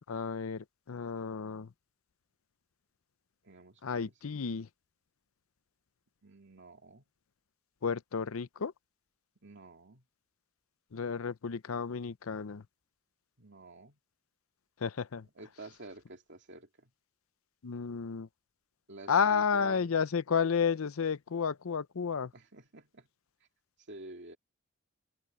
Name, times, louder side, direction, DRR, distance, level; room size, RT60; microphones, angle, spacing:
voice 1, 0.1-1.7 3.8-4.7 7.8-8.7 10.9-12.6 14.8-15.3 17.6-18.3 19.1-22.3, left 6 dB, 85° left, 0.6 m, -32 dB
voice 2, 3.4-4.0 6.2-7.0 9.4-10.0 13.4-14.0 15.4-16.9 18.9-19.9 22.3-23.1 23.9-24.4, right 2 dB, 60° right, 2.6 m, -50 dB
head